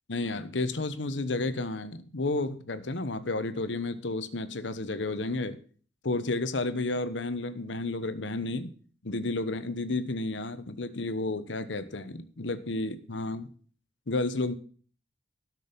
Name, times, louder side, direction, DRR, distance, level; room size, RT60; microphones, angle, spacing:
voice 1, 0.1-5.6 6.0-8.7 9.0-13.5 14.1-14.6, left 2 dB, 85° left, 12 dB, 1.0 m, -31 dB
12.5 x 6.3 x 6.9 m, 0.44 s
head